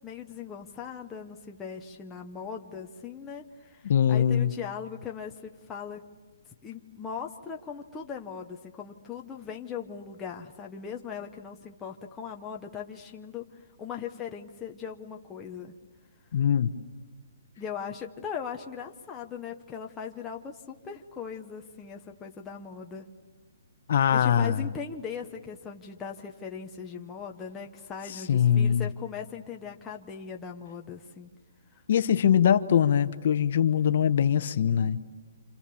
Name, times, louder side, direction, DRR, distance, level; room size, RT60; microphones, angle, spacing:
voice 1, 0.0-6.0 6.6-15.8 17.6-23.1 24.1-31.3 31.7-31.8, left 7 dB, 10° left, 1 dB, 0.8 m, -39 dB
voice 2, 3.8-4.5 16.3-16.7 23.9-24.7 28.3-28.9 31.9-35.0, left 8 dB, 45° left, 11 dB, 1.0 m, -22 dB
29.0 x 27.0 x 7.0 m, 1.3 s
hypercardioid pair, 175°, 0 cm